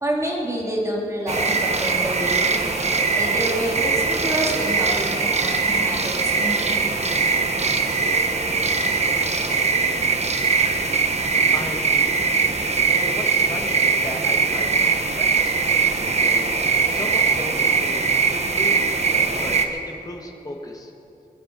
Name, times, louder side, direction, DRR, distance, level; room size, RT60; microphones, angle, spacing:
voice 1, 0.0-2.8 3.1-6.7, right 1 dB, 20° right, -3 dB, 3.2 m, -28 dB
sound 1, 1.3-19.7, right 4 dB, 45° right, 1.1 m, -21 dB
voice 2, 11.5-12.1 12.9-16.5 16.9-20.9, left 1 dB, 25° left, 1 dB, 2.0 m, -36 dB
23.0 x 11.0 x 5.4 m, 2.9 s
wide cardioid pair, 130°, 15 cm